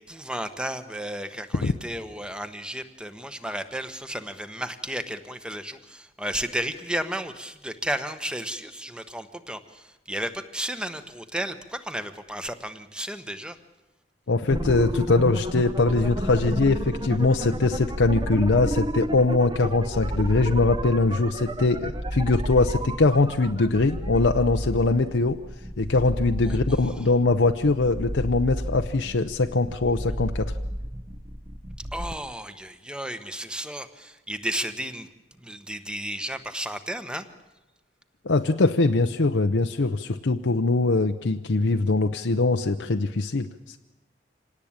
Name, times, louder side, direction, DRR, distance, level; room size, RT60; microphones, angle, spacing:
voice 1, 0.0-13.6 26.5-26.6 31.9-35.1 35.4-37.2, right 1 dB, 5° right, 10 dB, 1.2 m, -33 dB
voice 2, 14.3-25.4 25.8-30.5 38.2-43.8, left 3 dB, 85° left, 5 dB, 0.8 m, -22 dB
sound 1, 14.5-32.1, equal, 25° right, 1.1 m, -31 dB
26.0 x 18.5 x 8.8 m, 1.1 s
head